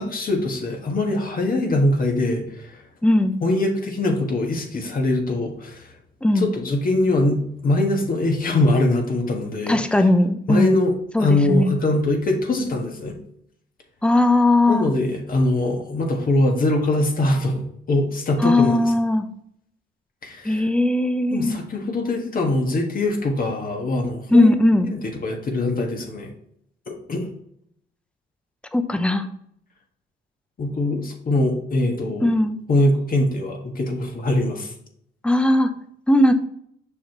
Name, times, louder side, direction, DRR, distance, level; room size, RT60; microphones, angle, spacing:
voice 1, 0.0-2.8 3.4-5.9 6.4-9.8 10.5-13.2 14.7-17.6 17.9-18.9 20.2-20.7 21.3-24.5 24.9-26.3 26.9-27.3 30.6-32.3 32.7-34.7, left 2 dB, 45° left, 1 dB, 1.6 m, -22 dB
voice 2, 3.0-3.3 6.2-6.5 9.7-10.8 11.1-11.7 14.0-14.9 18.4-19.3 20.4-21.6 24.3-24.9 28.7-29.3 32.2-32.6 35.2-35.7 36.1-36.3, left 1 dB, 5° left, 9 dB, 0.7 m, -18 dB
6.3 x 5.7 x 3.0 m, 0.69 s
cardioid pair, 90°, 20 cm